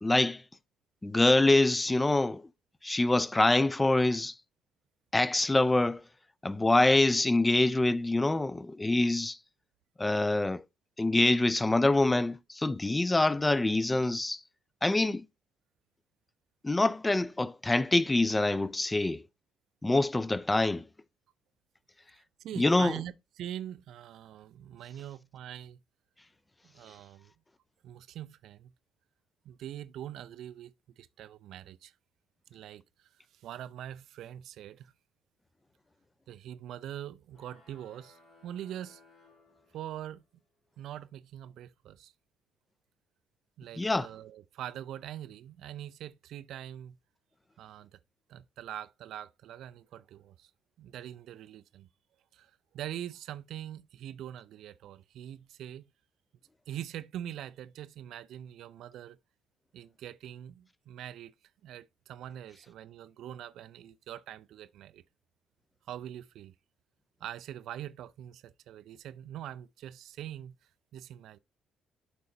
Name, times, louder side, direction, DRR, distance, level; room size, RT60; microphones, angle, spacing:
voice 1, 0.0-0.4 1.0-2.4 2.8-4.3 5.1-6.0 6.4-9.4 10.0-10.6 11.0-14.4 14.8-15.3 16.6-19.2 19.8-20.8 22.6-22.9 43.8-44.1, left 2 dB, 15° left, 0.4 m, -25 dB
voice 2, 22.2-25.8 26.6-27.3 27.8-28.7 29.4-31.9 32.5-34.9 36.3-39.0 39.7-40.2 40.8-42.1 43.6-47.0 47.6-48.0 48.3-50.5 50.8-51.9 52.3-55.8 56.7-59.2 59.7-61.3 61.6-65.0 65.9-66.5 67.2-70.5 70.9-71.4, right 11 dB, 60° right, 0.4 m, -43 dB
sound 1, 37.3-40.2, left 2 dB, 60° left, 2.4 m, -61 dB
11.5 x 4.2 x 2.5 m
figure-of-eight pair, 45°, 0 cm